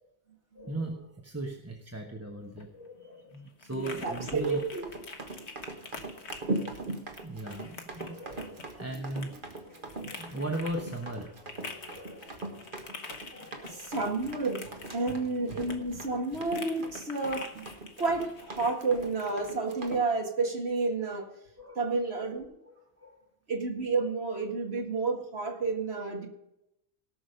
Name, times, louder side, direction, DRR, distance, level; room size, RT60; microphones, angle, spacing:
voice 1, 0.5-4.6 7.2-11.4 11.7-12.9 13.3-13.9 15.0-15.2 16.0-16.2 21.6-22.0 22.6-23.3, right 1 dB, 15° right, 1 dB, 1.1 m, -39 dB
sound 1, 2.4-19.6, left 4 dB, 75° left, 1.4 m, -47 dB
voice 2, 3.7-4.8 13.7-14.7 14.9-21.3 21.8-22.5 23.5-26.3, right 3 dB, 65° right, 3 dB, 2.1 m, -30 dB
Run, 4.0-20.0, right 2 dB, 50° right, 1.7 m, -40 dB
17.5 x 6.2 x 5.1 m, 0.84 s
omnidirectional pair, 1.1 m